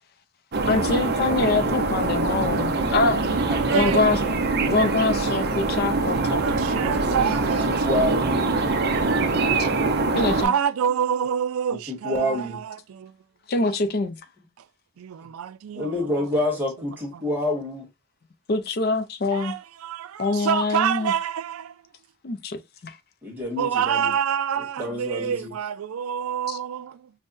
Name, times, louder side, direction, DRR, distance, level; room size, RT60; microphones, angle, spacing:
sound 1, 0.5-10.5, right 3 dB, 50° right, 0.6 m, -24 dB
voice 1, 0.7-3.2 3.7-4.2 4.7-6.4 9.6-9.7 10.1-10.5 13.5-14.2 18.5-19.5 20.2-21.1 22.2-22.6 22.8-23.0 26.5-26.6, left 3 dB, 50° left, 0.5 m, -24 dB
voice 2, 3.2-4.1 6.0-8.1 10.4-13.2 15.0-15.9 17.1-17.3 19.3-21.7 23.6-27.1, right 8 dB, 90° right, 0.3 m, -27 dB
voice 3, 7.6-8.4 11.9-12.6 15.7-17.9 23.2-24.1 24.8-25.5, left 1 dB, 10° right, 1.4 m, -27 dB
5.3 x 2.1 x 2.5 m
head